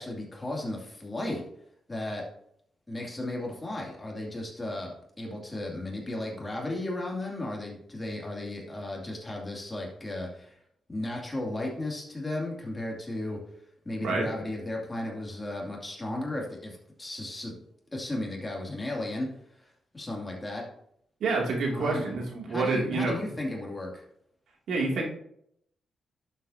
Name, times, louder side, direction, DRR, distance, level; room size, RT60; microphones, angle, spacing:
voice 1, 0.0-1.4 1.9-2.2 2.9-10.5 10.9-13.4 13.8-17.5 17.9-19.3 19.9-20.6 21.7-22.0 22.5-24.0, left 1 dB, 20° left, -1 dB, 2.6 m, -35 dB
voice 2, 21.2-23.3 24.7-25.1, right 3 dB, 80° right, -1 dB, 2.6 m, -28 dB
11.0 x 7.6 x 2.8 m, 0.71 s
cardioid pair, 100°, 0 cm